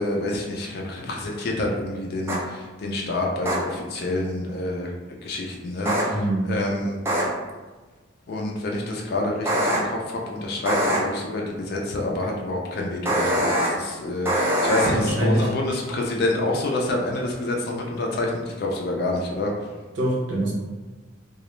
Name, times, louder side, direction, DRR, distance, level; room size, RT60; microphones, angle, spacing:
voice 1, 0.0-6.2 6.5-7.0 8.3-19.5, left 2 dB, 50° left, -1 dB, 0.4 m, -27 dB
sound 1, 2.3-2.4 3.5-3.6 5.9-6.0 7.1-7.2 9.5-9.8 10.7-11.0 13.1-13.7 14.3-14.9, equal, 15° right, 0.4 m, -22 dB
voice 2, 6.1-6.5 14.8-15.5 19.9-20.5, right 1 dB, 60° right, -6 dB, 0.7 m, -24 dB
2.3 x 2.0 x 3.0 m, 1.3 s
head